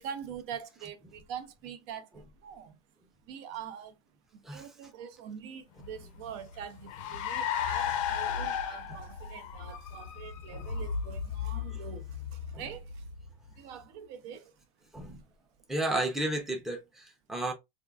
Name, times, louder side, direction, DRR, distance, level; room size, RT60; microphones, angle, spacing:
voice 1, 0.0-2.8 3.3-3.9 4.3-13.0 13.6-14.5, right 8 dB, 50° right, 0.5 m, -44 dB
Car, 5.8-13.6, left 7 dB, 60° left, 0.6 m, -35 dB
voice 2, 15.7-17.5, right 2 dB, ahead, 0.6 m, -32 dB
3.4 x 2.3 x 2.3 m
supercardioid pair, 140°, 19 cm